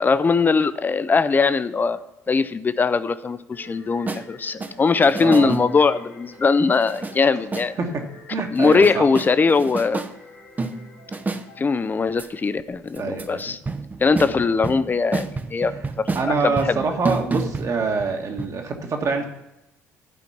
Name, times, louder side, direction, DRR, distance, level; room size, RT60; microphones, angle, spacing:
voice 1, 0.0-2.0 2.3-7.7 8.5-10.0 11.6-13.6 14.0-15.7 16.2-16.8, left 4 dB, 20° left, 13 dB, 0.5 m, -20 dB
sound 1, 3.5-12.3, left 1 dB, 75° left, 2.0 m, -48 dB
sound 2, 4.1-4.2 4.6-5.9 6.7-7.2 7.5-7.7 8.5-10.1 10.6-11.5 12.2-12.3 13.0-13.4 13.7-18.1 18.4-18.5, right 3 dB, 20° right, 0.7 m, -29 dB
voice 2, 5.2-5.5 7.8-8.0 8.3-9.0 13.0-13.5 16.1-19.2, right 4 dB, 40° right, 3 dB, 1.5 m, -25 dB
11.5 x 5.2 x 5.8 m, 0.93 s
figure-of-eight pair, 50°, 8 cm